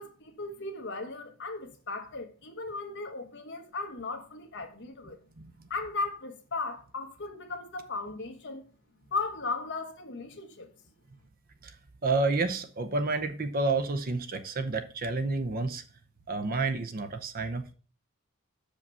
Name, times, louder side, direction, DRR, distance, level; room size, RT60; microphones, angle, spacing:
voice 1, 0.0-5.2 5.7-8.6 9.1-10.7, left 3 dB, 50° left, 1.3 m, -36 dB
voice 2, 5.4-5.7 11.6-11.7 12.0-15.8 16.3-17.7, right 3 dB, 40° right, 0.7 m, -30 dB
6.6 x 5.2 x 5.5 m
head